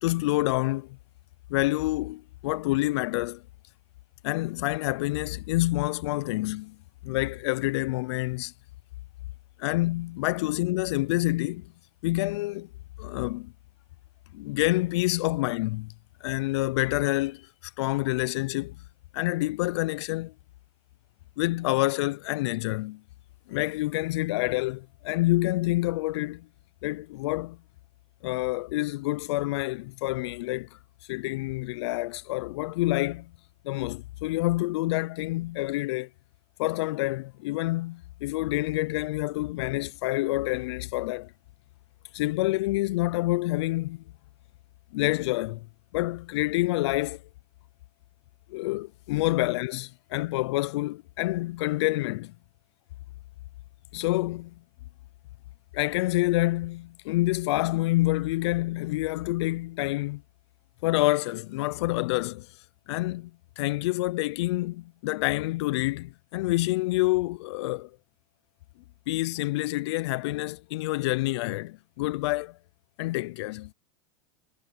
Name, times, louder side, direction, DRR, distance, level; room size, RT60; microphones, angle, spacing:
voice 1, 0.0-1.0 1.5-3.4 4.2-6.8 7.0-8.5 9.6-11.7 12.0-12.7 13.0-13.5 14.3-15.9 16.2-17.5 17.8-18.8 19.1-20.3 21.4-23.0 23.5-26.5 26.8-27.6 28.2-30.7 31.1-33.3 33.6-36.1 36.6-41.3 42.1-44.0 44.9-45.7 45.9-47.2 48.5-52.3 53.9-54.5 55.7-60.2 60.8-62.5 62.9-63.3 63.6-67.9 69.1-72.6 73.0-73.7, left 19 dB, 70° left, 0.4 m, -27 dB
supercardioid pair, 145°, 15 cm